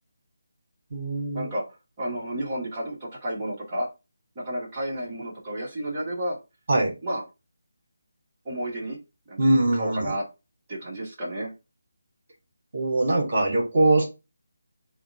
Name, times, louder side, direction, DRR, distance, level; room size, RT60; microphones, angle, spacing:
voice 1, 0.9-1.5 6.7-6.9 9.4-10.1 12.7-14.0, right 2 dB, 40° right, 0 dB, 1.8 m, -22 dB
voice 2, 2.0-3.9 4.3-6.4 7.0-7.2 8.4-9.0 9.3-9.4 9.8-10.2 10.7-11.5, right 1 dB, 20° right, -6 dB, 1.4 m, -31 dB
3.5 x 2.5 x 3.6 m, 0.27 s
figure-of-eight pair, 155°, 0 cm